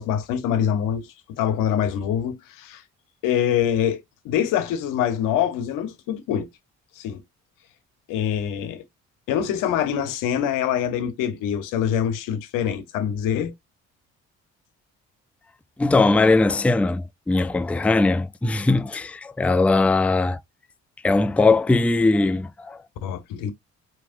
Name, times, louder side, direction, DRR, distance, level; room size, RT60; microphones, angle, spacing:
voice 1, 0.0-2.8 3.2-6.5 7.0-7.2 8.1-8.8 9.3-13.5 23.0-23.5, left 9 dB, 85° left, 0.9 m, -25 dB
voice 2, 15.8-20.4 21.0-22.8, left 3 dB, 5° left, 0.4 m, -20 dB
4.8 x 2.9 x 2.5 m
supercardioid pair, 65°, 32 cm